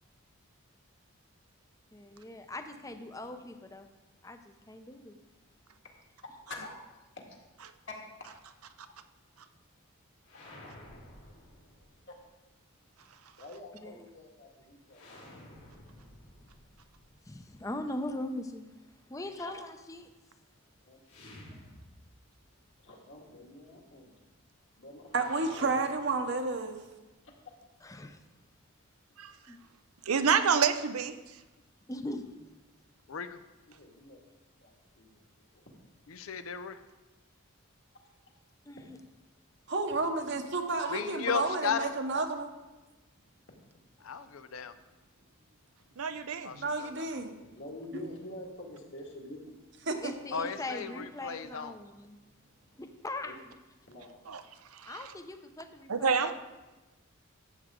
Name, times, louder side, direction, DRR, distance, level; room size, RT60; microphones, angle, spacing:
voice 1, 1.9-3.9 4.2-5.2 13.8-14.0 17.3-18.7 19.1-20.1 27.8-28.2 29.5-29.6 31.9-32.6 38.7-39.0 50.0-52.2 52.8-53.3 54.9-56.3, left 2 dB, 15° left, 7 dB, 0.6 m, -40 dB
sound 1, 10.2-12.2 14.9-17.9 21.0-22.5 22.7-22.8 25.1-26.9, left 1 dB, 90° left, 3.7 m, -52 dB
voice 2, 13.4-15.7 19.4-19.5 20.8-21.0 22.8-24.2 24.8-25.3 25.6-25.7 33.7-34.2 34.6-35.2 47.5-49.4 53.2-53.3 53.9-54.2, left 2 dB, 55° left, -1 dB, 1.9 m, -47 dB
voice 3, 25.1-26.8 39.7-42.5 46.6-47.3 49.9-50.1, right 3 dB, 55° right, 6 dB, 0.9 m, -31 dB
voice 4, 30.1-31.1 46.0-46.5 54.3-54.4 54.7-55.1 55.9-56.3, right 6 dB, 85° right, 10 dB, 0.7 m, -28 dB
voice 5, 33.1-33.4 36.1-36.8 40.9-41.9 44.0-44.7 46.4-47.1 50.3-51.8, left 6 dB, 70° left, 11 dB, 0.5 m, -35 dB
13.0 x 8.0 x 3.7 m, 1.1 s
head